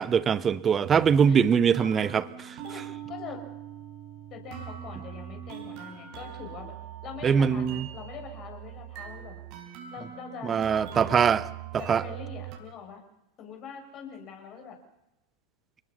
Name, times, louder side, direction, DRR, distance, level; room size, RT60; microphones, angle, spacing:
voice 1, 0.0-2.6 7.2-7.9 10.4-11.4 11.9-12.0, right 7 dB, 20° right, 1.1 m, -22 dB
sound 1, 0.8-12.6, right 11 dB, 40° right, 4.7 m, -42 dB
voice 2, 2.6-3.4 4.3-6.7 7.0-9.4 9.9-10.6 11.1-11.3 11.7-13.0 13.4-14.8, left 7 dB, 35° left, 7.8 m, -43 dB
29.5 x 20.0 x 5.8 m
figure-of-eight pair, 90°, 0 cm